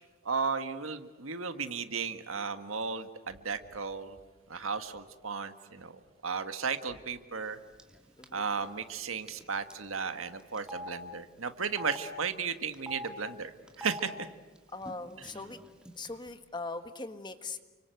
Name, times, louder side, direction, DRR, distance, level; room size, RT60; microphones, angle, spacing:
voice 1, 0.2-4.2 4.5-5.9 6.2-7.6 8.3-13.5 13.8-14.3, right 5 dB, 85° right, 9 dB, 1.7 m, -35 dB
Telephone, 7.8-8.0 8.2-8.4 9.3-9.4 9.7-9.8 10.6-10.9 11.6-12.0 12.7-13.1 13.7-14.0 14.8-14.9 15.2-15.9, equal, 5° right, 2.2 m, -42 dB
voice 2, 14.7-15.6 15.9-17.6, left 3 dB, 20° left, 9 dB, 1.5 m, -40 dB
30.0 x 25.0 x 7.9 m, 1.2 s
head